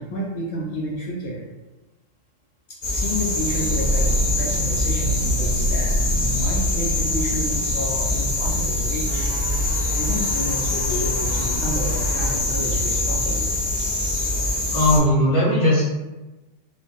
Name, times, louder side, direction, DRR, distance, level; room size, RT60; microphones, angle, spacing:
voice 1, 0.0-1.4 2.9-4.1 4.3-9.3 9.9-13.5, equal, 65° left, -3 dB, 0.8 m, -30 dB
sound 1, 2.8-15.0, left 2 dB, 50° left, 0.4 m, -24 dB
sound 2, 3.2-12.9, right 1 dB, 85° left, 1.0 m, -28 dB
sound 3, 9.1-12.4 13.1-14.0, right 1 dB, 60° right, 0.8 m, -37 dB
voice 2, 14.7-15.8, left 1 dB, 15° right, -8 dB, 0.4 m, -18 dB
2.5 x 2.1 x 2.5 m, 1.1 s
omnidirectional pair, 1.3 m